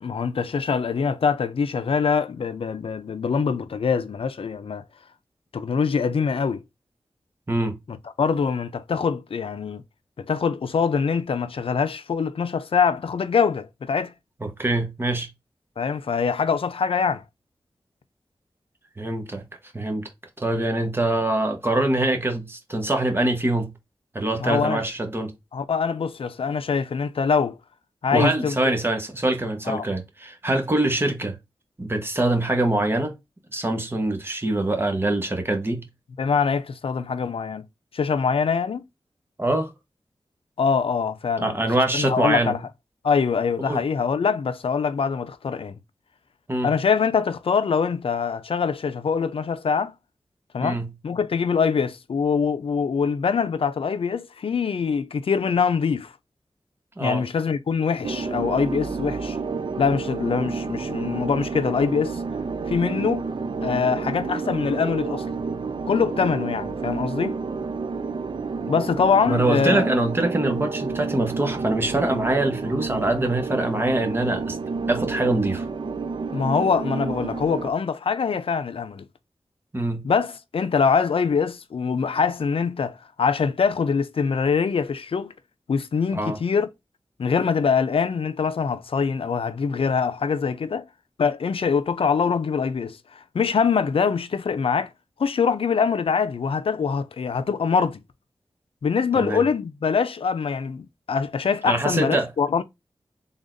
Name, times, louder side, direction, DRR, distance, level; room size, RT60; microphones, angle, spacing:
voice 1, 0.0-4.8 5.5-6.6 7.9-9.8 10.2-14.1 15.8-17.2 24.4-24.8 25.5-27.6 28.0-28.6 29.7-29.8 36.2-37.6 37.9-38.8 40.6-41.6 41.9-42.6 43.0-45.7 46.6-49.9 50.5-56.1 57.0-59.4 59.8-62.2 62.7-63.3 63.6-65.2 65.9-67.3 68.7-69.9 76.3-79.1 80.0-85.3 85.7-86.7 87.2-90.8 91.2-94.9 95.2-98.0 98.8-102.6, left 6 dB, 75° left, 0.5 m, -24 dB
voice 2, 14.4-15.3 19.0-19.4 19.7-20.1 20.4-23.7 24.1-25.3 28.1-31.4 31.8-33.1 33.5-35.8 39.4-39.7 41.4-42.5 43.6-43.8 46.5-46.7 50.6-50.9 57.0-57.2 69.3-74.6 74.9-75.7 79.7-80.0 86.1-86.4 99.2-99.4 101.7-102.3, right 2 dB, 25° right, 1.0 m, -24 dB
sound 1, 58.0-77.7, right 4 dB, 55° right, 0.4 m, -30 dB
3.9 x 3.5 x 2.5 m
wide cardioid pair, 105°, 10 cm